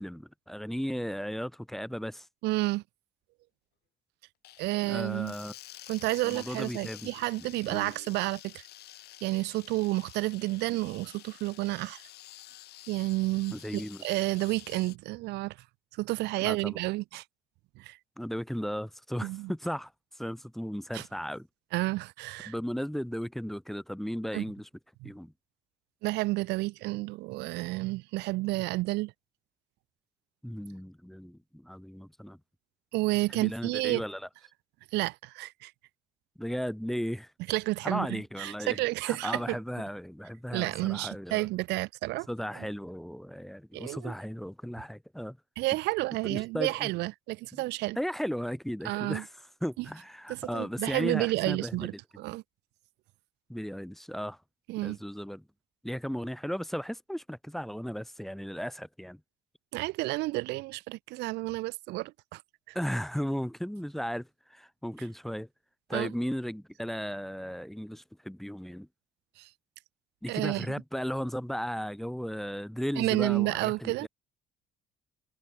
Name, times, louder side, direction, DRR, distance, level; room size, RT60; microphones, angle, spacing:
voice 1, 0.0-2.3 4.8-5.5 6.2-7.1 7.7-7.9 10.7-10.8 13.5-14.0 16.4-16.8 18.2-21.5 22.5-24.7 25.0-25.3 30.4-32.4 33.3-34.3 36.4-37.3 37.8-41.5 42.3-45.4 46.2-46.9 47.5-47.6 48.0-49.3 49.6-51.8 53.5-54.4 54.8-55.4 55.8-59.2 62.7-65.5 65.9-68.9 70.2-74.1, equal, ahead, 1.4 m, -35 dB
voice 2, 2.4-2.8 4.6-5.3 5.9-8.6 9.2-12.0 12.9-15.5 16.0-17.2 17.8-18.0 19.2-19.5 20.9-21.0 21.7-22.5 24.3-24.4 25.0-25.1 26.0-29.1 32.9-34.0 34.9-35.7 37.5-39.6 40.5-42.3 43.7-44.1 45.6-48.0 48.8-49.2 50.3-52.4 54.7-55.0 59.7-62.4 62.7-62.8 65.9-66.1 69.4-69.5 70.3-70.7 73.0-74.1, right 20 dB, 90° right, 1.0 m, -31 dB
sound 1, 4.4-15.0, left 15 dB, 75° left, 3.0 m, -50 dB
cardioid pair, 110°, 17 cm